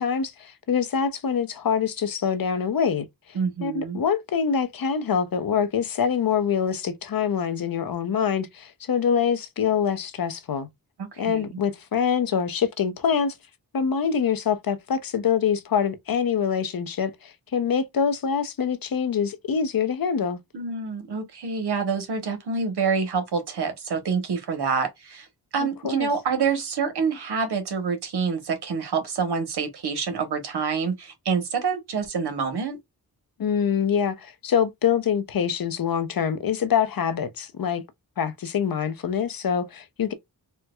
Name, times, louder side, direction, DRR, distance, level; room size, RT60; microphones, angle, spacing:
voice 1, 0.0-3.0 3.6-10.7 11.2-13.4 13.7-20.4 25.6-26.1 33.4-37.8 38.2-40.1, left 7 dB, 65° left, 0.7 m, -25 dB
voice 2, 3.3-4.0 11.0-11.6 20.5-25.3 25.5-32.8, right 5 dB, 85° right, 1.1 m, -27 dB
4.4 x 2.1 x 2.2 m
wide cardioid pair, 75°, 38 cm